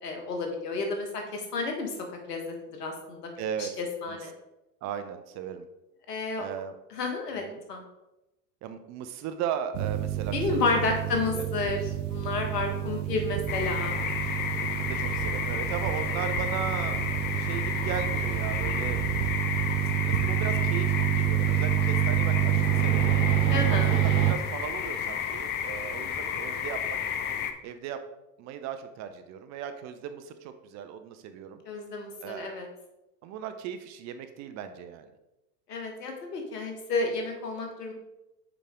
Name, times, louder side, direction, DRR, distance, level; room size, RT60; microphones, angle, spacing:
voice 1, 0.0-2.0 2.3-3.3 3.6-4.3 6.1-6.4 6.9-7.4 7.7-7.8 10.3-14.0 23.5-23.9 31.6-32.7 35.7-37.9, left 3 dB, 75° left, 3 dB, 1.5 m, -31 dB
voice 2, 3.4-3.7 4.1-4.2 4.8-5.7 6.4-6.7 7.5-7.6 8.6-10.6 11.3-11.5 14.6-17.0 17.3-19.0 20.0-23.2 23.7-27.0 27.6-28.0 28.4-31.6 32.2-32.5 33.2-35.1, right 8 dB, 35° right, 9 dB, 0.6 m, -37 dB
sound 1, 9.7-24.3, right 12 dB, 65° right, 0.9 m, -28 dB
sound 2, 13.5-27.5, left 8 dB, 25° left, 0.4 m, -32 dB
6.8 x 5.0 x 3.6 m, 0.95 s
figure-of-eight pair, 80°, 48 cm